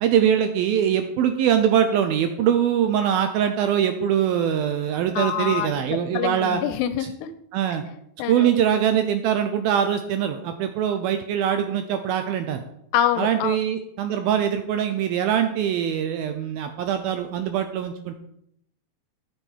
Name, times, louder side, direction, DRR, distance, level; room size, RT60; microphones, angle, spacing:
voice 1, 0.0-6.6 7.5-7.8 8.3-12.6 13.2-18.2, right 9 dB, 80° right, 7 dB, 2.2 m, -23 dB
voice 2, 5.2-7.3 8.2-8.5 12.9-13.6, left 10 dB, 85° left, 11 dB, 2.9 m, -26 dB
12.0 x 7.3 x 4.5 m, 0.74 s
omnidirectional pair, 4.9 m